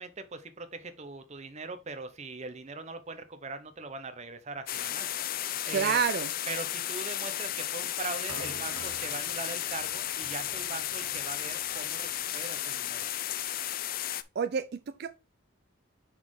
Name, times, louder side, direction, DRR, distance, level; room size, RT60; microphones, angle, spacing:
voice 1, 0.0-6.0 6.5-13.1, right 3 dB, 35° right, 0.8 m, -41 dB
sound 1, 4.7-14.2, left 12 dB, 45° left, 0.4 m, -34 dB
voice 2, 5.7-6.3 14.4-15.1, right 7 dB, 50° right, 0.4 m, -28 dB
sound 2, 7.5-12.5, right 4 dB, 70° right, 0.9 m, -49 dB
5.7 x 4.2 x 4.7 m
head